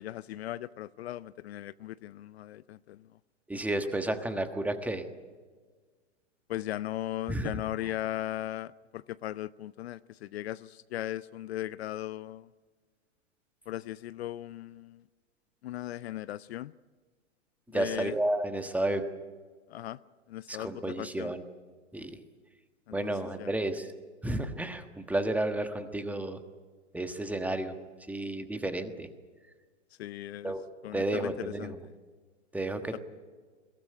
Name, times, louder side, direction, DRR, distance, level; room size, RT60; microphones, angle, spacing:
voice 1, 0.0-3.1 4.1-4.2 6.5-12.5 13.7-15.0 15.6-16.7 17.7-18.2 19.7-20.0 20.3-21.3 22.9-23.1 23.4-23.5 30.0-30.5 30.8-31.7 32.9-33.0, left 13 dB, 60° left, 17 dB, 0.6 m, -38 dB
voice 2, 3.5-5.0 7.3-7.5 17.7-19.0 20.5-21.4 21.9-22.1 22.9-23.9 24.2-26.4 26.9-27.7 28.1-29.1 30.4-30.6 30.9-31.8 32.5-33.0, right 1 dB, 5° right, 8 dB, 1.3 m, -31 dB
22.5 x 17.5 x 10.0 m, 1.5 s
hypercardioid pair, 125°, 36 cm